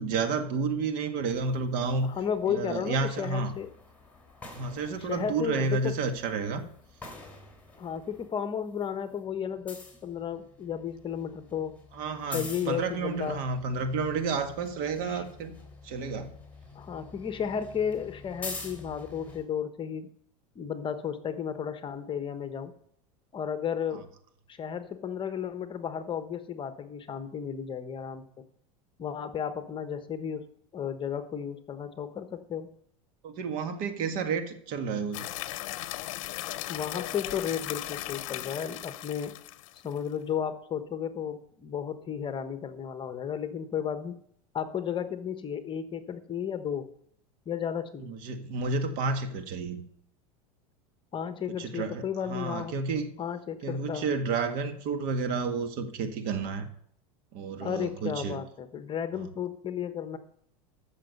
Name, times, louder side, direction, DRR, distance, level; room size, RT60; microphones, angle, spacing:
voice 1, 0.0-2.1 2.5-3.5 4.5-6.6 11.9-15.6 15.8-16.3 33.2-35.3 48.0-49.8 51.6-52.0 52.3-53.1 53.6-56.7 57.3-58.4 59.1-59.3, right 4 dB, 55° right, 7 dB, 1.8 m, -31 dB
sound 1, 1.3-8.3 8.6-19.4, left 3 dB, 10° left, 3.6 m, -47 dB
voice 2, 2.0-3.7 5.0-6.0 7.8-11.8 12.3-13.4 15.0-15.2 16.7-20.1 20.5-22.7 23.3-24.1 24.5-28.2 29.0-30.4 30.7-32.7 36.7-39.3 39.8-44.2 44.5-46.9 47.5-48.1 51.1-52.7 53.2-54.1 57.6-60.2, left 8 dB, 30° left, 10 dB, 1.1 m, -33 dB
sound 2, 35.1-40.0, left 15 dB, 70° left, 0.7 m, -37 dB
14.0 x 6.5 x 5.4 m, 0.66 s
hypercardioid pair, 105°, 17 cm